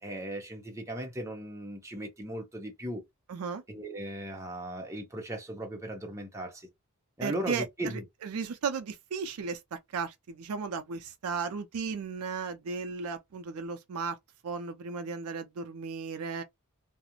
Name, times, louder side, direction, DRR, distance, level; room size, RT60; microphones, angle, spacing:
voice 1, 0.0-3.0 3.7-6.7 7.2-8.0, right 1 dB, 15° right, 0.7 m, -37 dB
voice 2, 3.3-3.6 7.2-14.2 14.4-16.4, right 5 dB, 75° right, 0.4 m, -35 dB
2.4 x 2.0 x 2.8 m
head